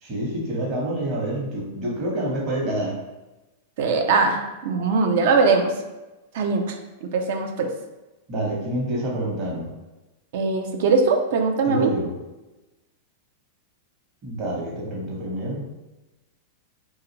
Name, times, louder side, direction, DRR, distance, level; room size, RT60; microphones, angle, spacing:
voice 1, 0.0-3.0 8.3-9.7 11.7-12.1 14.2-15.7, right 1 dB, 40° right, -4 dB, 1.0 m, -27 dB
voice 2, 3.8-5.7 6.3-7.7 10.3-11.9, right 4 dB, 65° right, 4 dB, 0.4 m, -21 dB
2.5 x 2.4 x 3.0 m, 1.1 s
hypercardioid pair, 105°, 0 cm